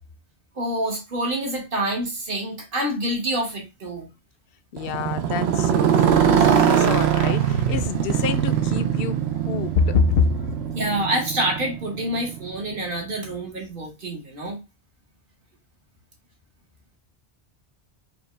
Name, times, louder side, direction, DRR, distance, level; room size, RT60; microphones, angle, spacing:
voice 1, 0.6-4.1 10.7-14.6, right 1 dB, 55° right, 1.5 m, -27 dB
voice 2, 4.7-10.2, left 6 dB, 65° left, 0.7 m, -26 dB
Motorcycle, 4.8-12.8, right 9 dB, 75° right, 0.8 m, -22 dB
4.9 x 2.3 x 3.2 m
omnidirectional pair, 1.1 m